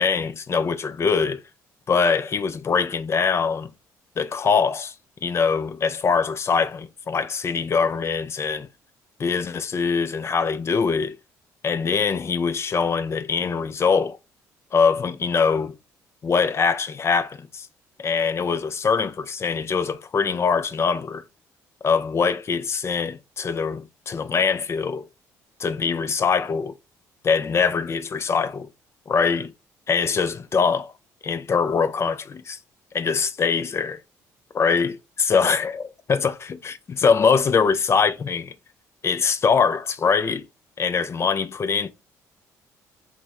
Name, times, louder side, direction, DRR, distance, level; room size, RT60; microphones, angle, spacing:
voice 1, 0.0-1.4 1.9-3.7 4.2-4.9 5.2-8.7 9.2-11.1 11.6-14.2 14.7-15.7 16.2-17.7 18.0-21.2 21.8-25.1 25.6-26.7 27.2-28.7 29.1-29.5 29.9-30.9 31.2-32.6 32.9-34.0 34.5-38.5 39.0-40.4 40.8-41.9, left 5 dB, 40° left, 0.4 m, -23 dB
3.4 x 2.1 x 2.9 m
supercardioid pair, 65°, 7 cm